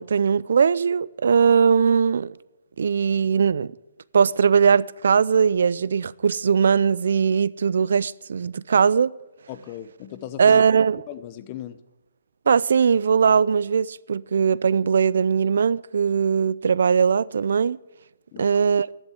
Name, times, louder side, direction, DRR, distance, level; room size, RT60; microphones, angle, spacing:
voice 1, 0.0-2.3 2.8-3.7 4.1-9.1 10.4-11.0 12.5-17.8 18.4-18.9, right 6 dB, 65° right, 0.4 m, -20 dB
voice 2, 9.5-10.6 11.1-11.8 18.3-18.5, left 11 dB, 25° left, 0.8 m, -37 dB
11.5 x 7.2 x 9.6 m
hypercardioid pair, 165°, 0 cm